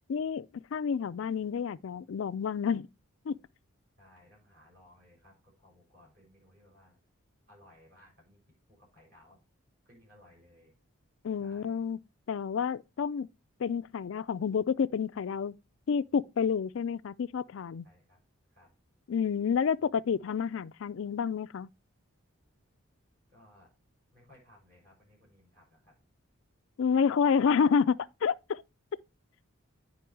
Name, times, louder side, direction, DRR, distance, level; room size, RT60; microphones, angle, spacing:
voice 1, 0.1-2.9 3.3-3.4 11.2-12.0 12.3-13.3 13.6-15.5 15.9-17.9 19.1-21.7 26.8-28.6, left 6 dB, 60° left, 0.3 m, -29 dB
voice 2, 4.0-7.0 7.5-8.4 8.7-9.4 9.8-10.7 11.4-11.9 17.8-18.2 18.5-18.7 23.3-23.7 24.1-25.9, left 1 dB, 45° right, 6.0 m, -60 dB
9.3 x 5.2 x 4.6 m
head